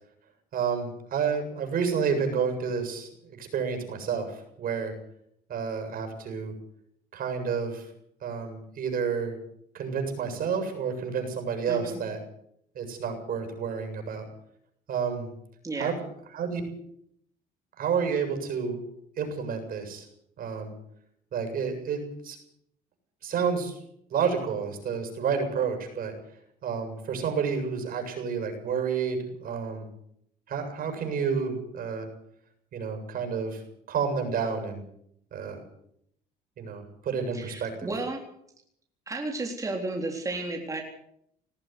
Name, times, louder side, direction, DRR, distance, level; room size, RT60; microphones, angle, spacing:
voice 1, 0.5-4.9 5.5-6.5 7.1-7.9 8.2-9.3 9.7-12.2 12.7-14.3 14.9-15.3 15.8-15.9 16.3-16.6 17.8-18.8 19.2-20.1 20.4-20.7 21.3-22.4 23.2-23.8 24.1-26.1 26.6-29.9 30.5-32.1 32.7-33.6 33.9-34.8 35.3-35.6 36.6-37.9, right 6 dB, 60° right, 5 dB, 7.5 m, -30 dB
voice 2, 11.7-12.0 15.6-15.9 37.3-38.2 39.1-40.8, right 2 dB, 20° right, 1 dB, 3.9 m, -33 dB
19.5 x 14.0 x 9.5 m, 0.72 s
cardioid pair, 110°, 17 cm